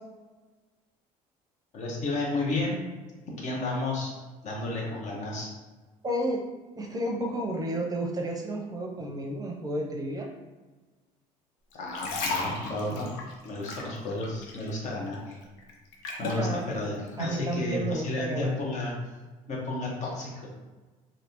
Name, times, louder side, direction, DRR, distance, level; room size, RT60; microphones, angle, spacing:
voice 1, 1.7-2.8 3.4-4.1 4.4-5.5 11.7-13.1 13.4-15.4 16.2-18.9 19.5-20.5, left 2 dB, 55° left, -2 dB, 1.1 m, -32 dB
voice 2, 6.0-6.4 6.8-10.3 16.1-16.6 17.2-18.5, right 1 dB, 25° right, 1 dB, 0.6 m, -32 dB
sound 1, 11.7-14.8 15.1-16.5 17.1-17.2, left 3 dB, 90° left, 0.6 m, -35 dB
3.2 x 2.7 x 2.8 m, 1.3 s
supercardioid pair, 95°, 15 cm